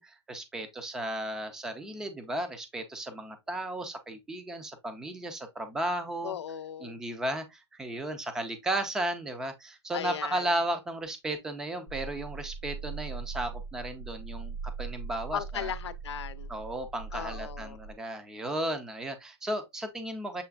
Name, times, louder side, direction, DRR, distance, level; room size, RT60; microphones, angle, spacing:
voice 1, 0.0-6.3 6.8-15.7 16.5-20.4, right 1 dB, 5° right, 0.4 m, -34 dB
voice 2, 6.2-7.0 9.9-10.6 15.3-16.5 17.1-17.8, left 9 dB, 75° left, 0.6 m, -37 dB
sound 1, 11.9-17.9, right 5 dB, 85° right, 2.2 m, -40 dB
6.8 x 3.2 x 2.3 m
hypercardioid pair, 165°, 14 cm